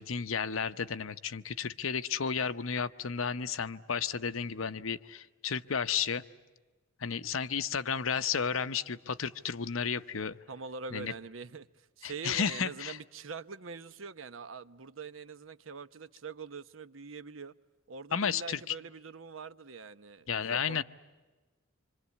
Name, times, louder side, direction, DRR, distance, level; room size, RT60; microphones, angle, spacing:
voice 1, 0.0-6.2 7.0-10.4 10.9-11.1 12.0-13.0 18.1-18.6 20.3-20.8, left 6 dB, 85° left, 12 dB, 0.9 m, -32 dB
voice 2, 10.5-17.5 17.9-20.8, right 4 dB, 75° right, 13 dB, 0.8 m, -44 dB
26.5 x 26.0 x 8.4 m, 1.3 s
head